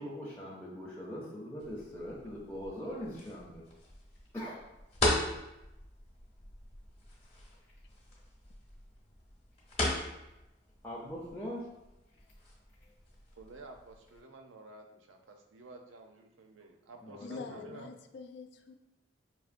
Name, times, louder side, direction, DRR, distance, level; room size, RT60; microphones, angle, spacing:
voice 1, 0.0-3.6 4.3-4.6 10.8-11.7 17.0-17.7, equal, 10° left, -7 dB, 0.5 m, -41 dB
sound 1, 1.6-14.2, left 1 dB, 30° left, 0.9 m, -39 dB
voice 2, 13.4-17.9, right 2 dB, 80° right, 4 dB, 0.5 m, -51 dB
voice 3, 17.2-18.7, left 4 dB, 60° left, 7 dB, 0.3 m, -45 dB
4.7 x 2.8 x 2.5 m, 0.94 s
head